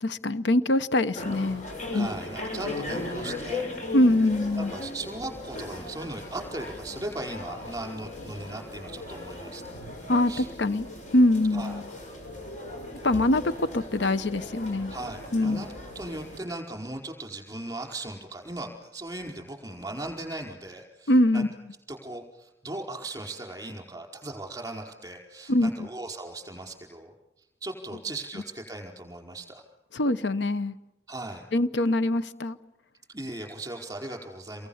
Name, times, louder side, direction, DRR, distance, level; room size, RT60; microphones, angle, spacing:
voice 1, 0.0-1.7 1.9-2.1 3.9-4.7 10.1-10.9 11.1-11.8 13.0-14.9 15.3-15.6 21.1-21.5 25.5-25.9 29.9-30.7 31.5-32.6, left 1 dB, 80° left, 0.9 m, -23 dB
sound 1, 1.1-16.4, left 2 dB, 40° left, 7.2 m, -38 dB
voice 2, 1.9-3.6 4.7-9.7 10.3-10.5 11.5-11.8 14.9-15.7 15.9-21.4 21.9-27.1 27.6-29.6 31.1-31.5 33.1-34.7, right 2 dB, 20° right, 4.8 m, -38 dB
29.5 x 23.5 x 7.2 m
head